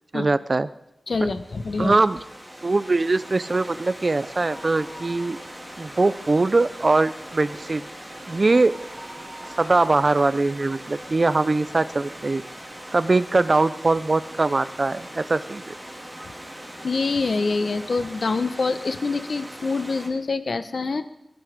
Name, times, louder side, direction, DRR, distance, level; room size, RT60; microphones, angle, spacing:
voice 1, 0.1-0.7 1.8-2.2 2.6-5.4 5.8-7.8 8.3-8.7 9.6-12.4 12.9-15.7, right 3 dB, 45° right, 14 dB, 0.6 m, -21 dB
voice 2, 1.1-1.9 16.8-21.1, left 3 dB, 70° left, 11 dB, 1.0 m, -25 dB
Stream / Liquid, 1.2-20.1, equal, 5° right, 3.7 m, -40 dB
sound 1, 4.4-5.9 6.3-6.4 6.8-11.2 11.7-11.8 12.6-12.7 12.9-13.0, right 1 dB, 15° left, 5.9 m, -46 dB
21.5 x 11.5 x 5.2 m, 0.86 s
wide cardioid pair, 75°, 0 cm